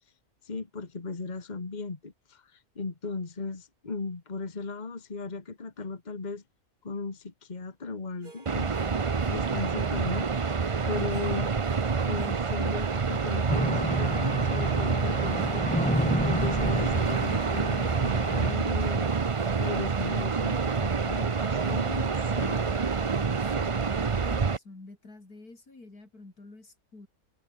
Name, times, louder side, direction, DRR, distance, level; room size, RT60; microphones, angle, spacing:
voice 1, 0.4-6.4 6.8-8.9 9.3-10.5 10.9-11.5 12.0-15.7 16.2-22.6, left 3 dB, 30° left, 1.8 m, -36 dB
Harp, 8.2-21.8, right 3 dB, 80° right, 4.5 m, -55 dB
sound 1, 8.5-24.6, right 5 dB, 30° right, 0.6 m, -27 dB
sound 2, 13.5-18.5, left 1 dB, 5° left, 1.8 m, -31 dB
voice 2, 23.1-27.1, left 2 dB, 90° left, 5.6 m, -49 dB
omnidirectional pair, 1.6 m